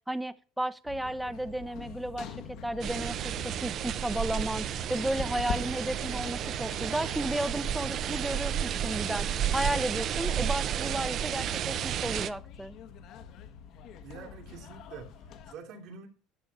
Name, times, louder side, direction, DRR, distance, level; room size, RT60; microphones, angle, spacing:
voice 1, 0.0-12.7, right 1 dB, 5° right, 0.7 m, -33 dB
sound 1, 0.8-15.5, left 6 dB, 55° left, 1.3 m, -45 dB
sound 2, 2.8-12.3, right 9 dB, 45° right, 0.7 m, -32 dB
voice 2, 14.0-16.1, right 6 dB, 65° right, 2.9 m, -46 dB
11.5 x 6.4 x 5.5 m
cardioid pair, 125°, 0 cm